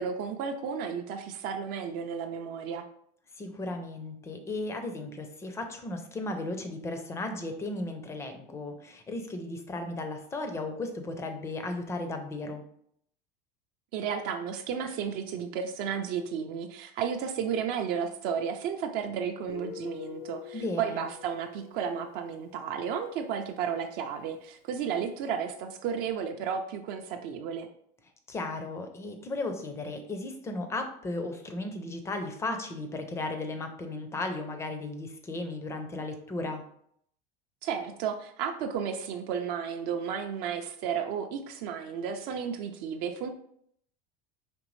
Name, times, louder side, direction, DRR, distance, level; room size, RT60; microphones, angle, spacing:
voice 1, 0.0-2.9 13.9-27.7 37.6-43.3, right 7 dB, 45° right, 5 dB, 0.4 m, -33 dB
voice 2, 3.4-12.6 20.5-21.0 28.3-36.6, left 2 dB, 15° left, 6 dB, 0.5 m, -35 dB
Guitar, 19.5-23.0, left 11 dB, 60° left, 0.5 m, -45 dB
5.1 x 3.2 x 3.1 m, 0.67 s
cardioid pair, 165°, 21 cm